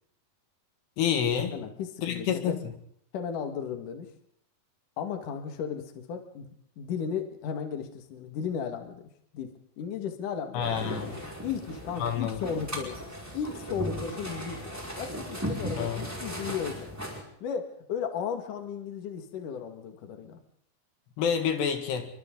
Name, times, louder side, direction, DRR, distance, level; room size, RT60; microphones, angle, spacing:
voice 1, 1.0-1.5 2.0-2.6 10.5-11.1 12.0-12.4 15.8-16.0 21.2-22.1, left 8 dB, 75° left, 6 dB, 4.0 m, -28 dB
voice 2, 1.5-2.6 3.1-4.1 5.0-6.5 6.8-9.0 9.3-9.5 9.8-10.7 11.4-13.0 13.3-14.7 15.0-16.9 17.4-20.4, left 7 dB, 55° left, 6 dB, 3.2 m, -35 dB
sound 1, 10.6-17.2, equal, 5° right, 5.0 m, -37 dB
29.0 x 24.0 x 3.9 m, 0.66 s
omnidirectional pair, 4.8 m